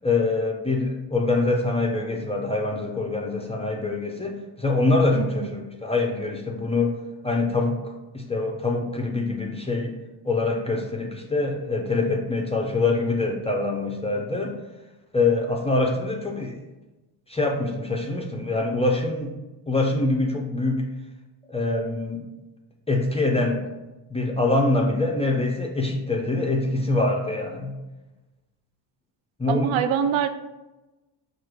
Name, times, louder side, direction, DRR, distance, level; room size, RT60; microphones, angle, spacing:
voice 1, 0.0-7.0 7.2-9.9 10.2-14.5 15.1-16.6 17.3-19.3 19.7-20.9 21.5-22.3 22.9-23.6 24.1-27.8 29.4-29.7, left 2 dB, 15° left, 0 dB, 0.4 m, -24 dB
voice 2, 5.1-5.6 29.5-30.3, right 8 dB, 70° right, 10 dB, 0.5 m, -24 dB
4.7 x 2.5 x 4.5 m, 1.1 s
cardioid pair, 110°, 49 cm